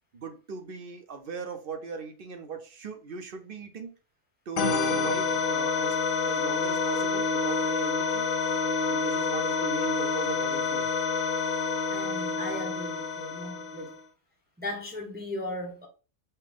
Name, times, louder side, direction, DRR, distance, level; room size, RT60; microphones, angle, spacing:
voice 1, 0.1-3.9 4.5-6.0 6.2-8.3 8.9-10.9, right 5 dB, 50° right, 0.8 m, -39 dB
sound 1, 4.6-14.0, left 4 dB, 55° left, 0.6 m, -28 dB
voice 2, 11.9-14.0 14.6-15.9, left 1 dB, 10° right, 0.8 m, -37 dB
5.7 x 2.2 x 3.3 m
omnidirectional pair, 1.3 m